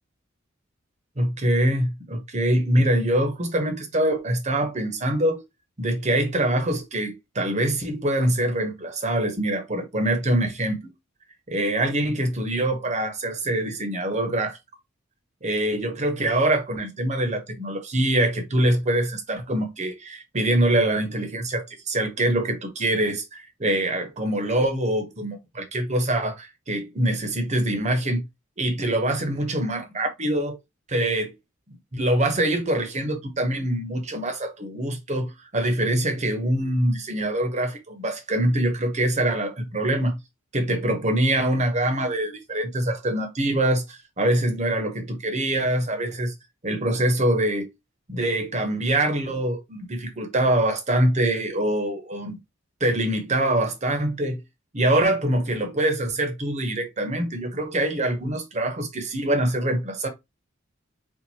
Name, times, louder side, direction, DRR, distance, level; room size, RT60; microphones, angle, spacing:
voice 1, 1.2-5.4 5.8-10.9 11.5-14.6 15.4-28.2 28.6-30.6 30.9-31.3 31.9-40.2 40.5-46.3 46.6-47.7 48.1-52.4 52.8-54.4 54.7-60.1, right 1 dB, 35° right, 1.0 m, -24 dB
4.5 x 2.5 x 4.2 m
head